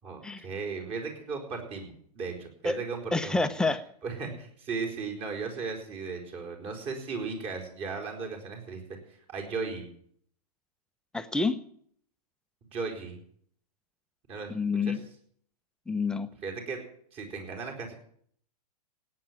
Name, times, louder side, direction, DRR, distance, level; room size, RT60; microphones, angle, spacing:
voice 1, 0.0-3.5 4.0-8.8 9.3-9.9 12.7-13.2 14.3-14.5 14.8-15.0 16.4-16.8 17.1-17.9, right 4 dB, 30° right, 3 dB, 4.6 m, -36 dB
voice 2, 3.1-3.8 11.1-11.6 14.5-15.0 15.9-16.3, left 3 dB, 5° left, 9 dB, 0.8 m, -28 dB
17.0 x 9.4 x 7.5 m, 0.64 s
hypercardioid pair, 135°, 21 cm